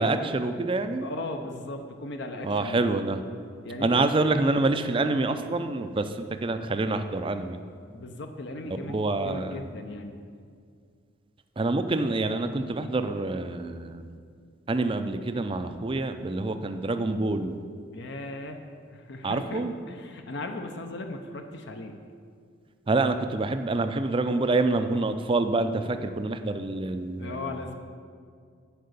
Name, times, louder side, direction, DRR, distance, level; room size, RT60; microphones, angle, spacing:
voice 1, 0.0-1.1 2.4-3.2 3.8-7.6 8.7-9.7 11.6-14.1 14.7-17.6 19.2-19.7 22.9-27.5, right 2 dB, 25° right, 8 dB, 0.4 m, -27 dB
voice 2, 1.0-2.9 3.6-4.1 7.9-10.2 17.9-18.6 18.9-22.0 27.2-27.8, left 2 dB, 55° left, 5 dB, 0.6 m, -37 dB
10.0 x 4.8 x 6.8 m, 2.2 s
head